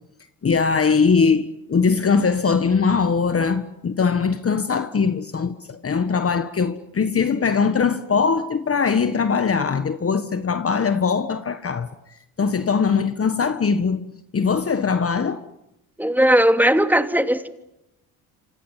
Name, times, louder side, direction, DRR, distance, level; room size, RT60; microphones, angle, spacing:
voice 1, 0.4-11.9 12.4-15.4, left 5 dB, 30° left, 1.4 m, -21 dB
voice 2, 16.0-17.5, equal, 5° right, 2.7 m, -17 dB
26.5 x 26.5 x 7.5 m
supercardioid pair, 70°, 43 cm